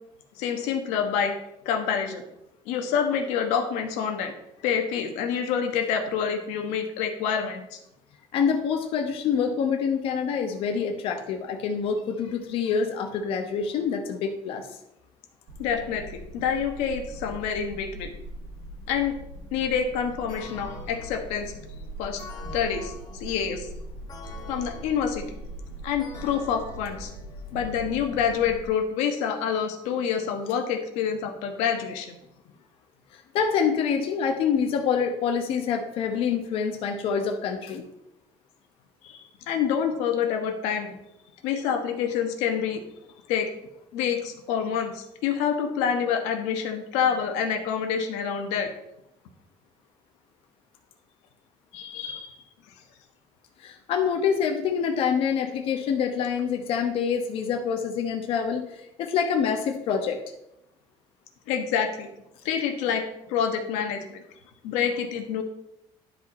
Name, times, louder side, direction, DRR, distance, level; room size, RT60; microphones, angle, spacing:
voice 1, 0.4-1.4 1.6-2.2 2.7-4.3 4.6-7.8 15.6-16.0 16.3-18.1 18.9-19.2 19.5-21.5 22.0-22.2 22.5-22.9 23.2-23.7 24.5-25.2 25.8-27.1 27.5-32.1 39.0-41.0 41.4-42.8 43.3-43.5 43.9-48.7 51.7-52.4 61.5-62.1 62.4-63.0 63.3-64.2 64.6-65.4, left 7 dB, 85° left, 5 dB, 1.2 m, -27 dB
voice 2, 8.3-14.8 33.1-37.9 53.6-60.2, left 6 dB, 55° left, 3 dB, 0.9 m, -26 dB
sound 1, 15.5-28.7, right 1 dB, 75° right, 1.7 m, -41 dB
sound 2, 20.3-27.9, left 5 dB, 35° left, 1.5 m, -46 dB
10.5 x 5.0 x 4.2 m, 0.84 s
cardioid pair, 140°, 11 cm